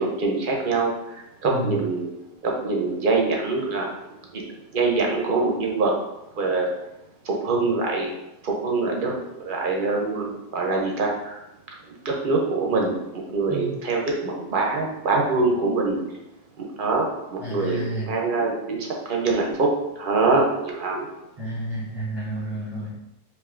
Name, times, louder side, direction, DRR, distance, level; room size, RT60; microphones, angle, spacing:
voice 1, 0.0-2.1 2.4-3.9 4.3-4.4 4.7-5.9 6.3-6.7 7.2-8.1 8.4-9.1 9.4-11.4 12.0-13.0 13.3-16.0 16.6-19.7 20.0-21.1, right 3 dB, 50° right, -1 dB, 0.8 m, -24 dB
voice 2, 1.4-1.8 13.5-13.8 17.4-18.1 21.4-22.9, right 1 dB, 25° right, -9 dB, 1.0 m, -30 dB
4.5 x 2.6 x 2.5 m, 0.90 s
omnidirectional pair, 1.3 m